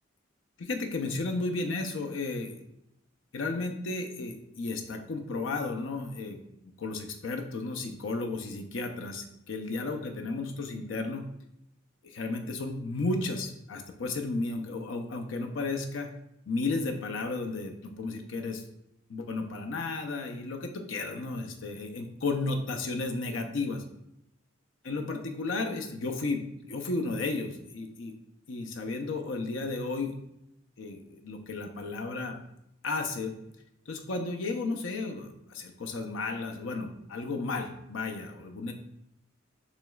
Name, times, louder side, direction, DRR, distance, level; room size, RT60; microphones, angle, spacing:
voice 1, 0.6-2.6 3.3-6.4 6.8-11.3 12.0-16.1 16.5-18.6 19.1-23.8 24.8-28.1 28.5-30.1 30.8-32.3 32.8-33.3 33.9-38.7, left 3 dB, 75° left, 4 dB, 0.6 m, -33 dB
6.2 x 3.0 x 2.3 m, 0.81 s
head